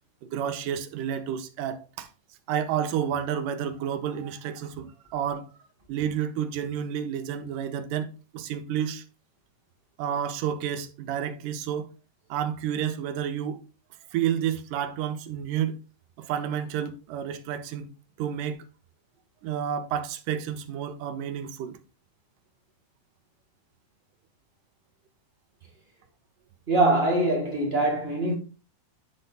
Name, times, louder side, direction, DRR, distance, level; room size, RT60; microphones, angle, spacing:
voice 1, 0.2-2.1 2.5-5.4 5.9-8.1 8.3-9.0 10.0-11.9 12.3-13.6 14.1-15.8 16.2-17.9 18.2-18.6 19.4-21.8, right 9 dB, 85° right, 2.3 m, -30 dB
voice 2, 26.7-28.4, right 2 dB, 25° right, 1.3 m, -23 dB
10.0 x 3.9 x 3.9 m
omnidirectional pair, 3.7 m